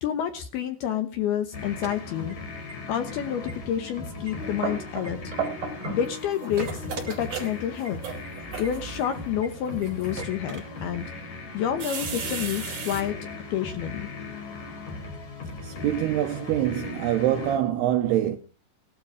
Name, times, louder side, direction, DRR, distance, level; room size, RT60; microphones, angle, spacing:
voice 1, 0.0-2.4 2.9-5.2 5.9-8.0 8.6-11.0 11.5-13.1 13.5-14.1, left 10 dB, 70° left, 2.4 m, -29 dB
sound 1, 1.5-17.6, left 3 dB, 40° left, 4.0 m, -38 dB
sound 2, 1.6-2.7 3.1-3.2 3.5-3.9 4.3-5.9 6.2-7.1 7.5-7.6 7.8-7.9 8.2-8.3 8.6-8.7 9.0-9.1 9.4-9.5 9.8-9.9 10.2-11.2, right 2 dB, 25° right, 3.2 m, -39 dB
sound 3, 4.2-6.2 6.4-9.0 9.6-10.1 10.8-10.9 11.8-13.0, right 5 dB, 40° right, 4.7 m, -34 dB
voice 2, 15.6-18.4, right 12 dB, 80° right, 2.4 m, -25 dB
17.5 x 12.5 x 4.9 m
omnidirectional pair, 5.6 m